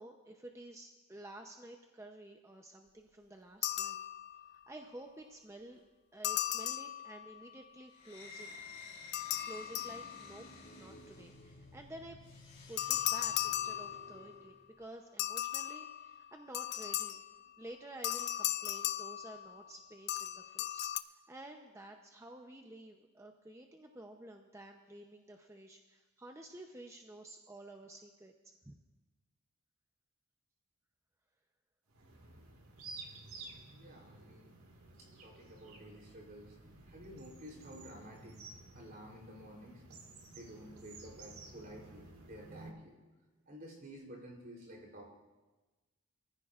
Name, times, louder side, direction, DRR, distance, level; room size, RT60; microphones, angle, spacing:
voice 1, 0.0-4.0 4.5-5.8 6.1-8.5 9.5-10.5 10.7-12.2 12.7-17.2 17.6-28.3 28.7-28.8, right 1 dB, 15° right, 3 dB, 0.7 m, -51 dB
sound 1, 3.6-4.6 6.2-7.5 9.1-10.5 12.8-14.4 15.2-17.5 18.0-19.7 20.1-21.0, left 13 dB, 50° left, 0.4 m, -37 dB
sound 2, 8.0-14.6, left 3 dB, 30° left, 4.1 m, -53 dB
sound 3, 31.9-42.7, right 3 dB, 80° right, 1.9 m, -53 dB
voice 2, 33.7-34.5 35.0-36.5 36.9-38.4 38.7-39.8 40.3-43.0 43.5-45.1, equal, 45° right, -1 dB, 3.4 m, -52 dB
24.5 x 14.5 x 2.5 m, 1.2 s
head